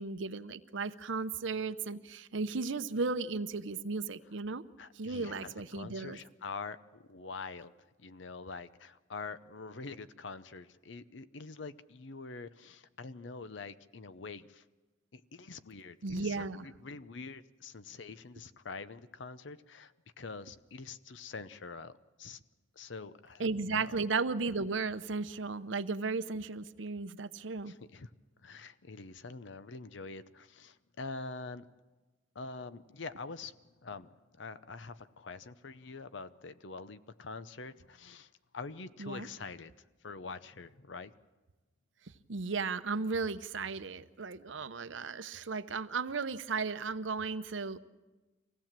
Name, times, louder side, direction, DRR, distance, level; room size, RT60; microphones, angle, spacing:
voice 1, 0.0-4.6 4.9-6.2 16.0-16.7 23.4-27.7 39.0-39.3 42.3-47.8, right 4 dB, 80° right, 12 dB, 0.8 m, -35 dB
voice 2, 4.8-14.6 15.1-22.4 22.8-24.0 27.7-28.1 28.4-31.6 32.3-33.5 33.8-34.1 34.3-39.7 40.0-41.1, left 4 dB, 75° left, 14 dB, 0.7 m, -45 dB
24.5 x 16.5 x 7.5 m, 1.2 s
head